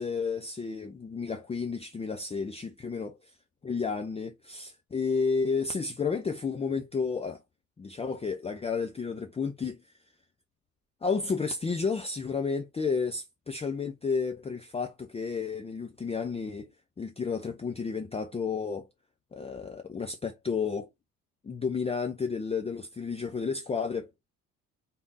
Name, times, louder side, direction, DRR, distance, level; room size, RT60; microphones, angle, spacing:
voice 1, 0.0-3.2 3.6-7.4 7.8-9.8 11.0-16.7 17.0-18.9 19.3-20.9 21.4-24.1, left 5 dB, 15° left, 0.6 m, -31 dB
4.1 x 3.5 x 2.6 m
figure-of-eight pair, 50°, 41 cm